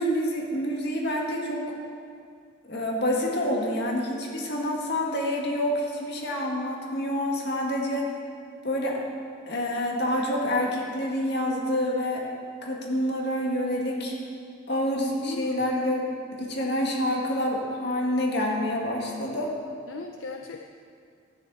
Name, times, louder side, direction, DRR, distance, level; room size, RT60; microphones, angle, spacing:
voice 1, 0.0-1.6 2.7-8.1 8.6-9.0 9.5-12.2 12.6-14.2 14.7-16.0 16.3-19.5, left 1 dB, 55° left, -1 dB, 1.9 m, -27 dB
voice 2, 15.2-15.7 19.9-20.7, left 4 dB, 75° left, 3 dB, 0.5 m, -38 dB
13.0 x 10.0 x 4.2 m, 2.3 s
head